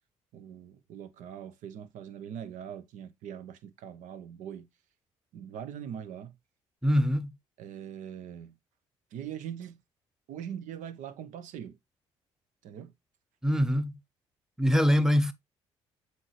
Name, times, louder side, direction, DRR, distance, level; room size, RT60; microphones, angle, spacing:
voice 1, 0.3-4.7 5.3-6.3 7.6-8.6 9.1-9.8 10.3-11.8 12.6-12.9, right 9 dB, 70° right, 0.9 m, -42 dB
voice 2, 6.8-7.4 13.4-14.0 14.6-15.3, equal, 5° right, 0.9 m, -24 dB
7.6 x 4.6 x 3.2 m
hypercardioid pair, 55°, 14 cm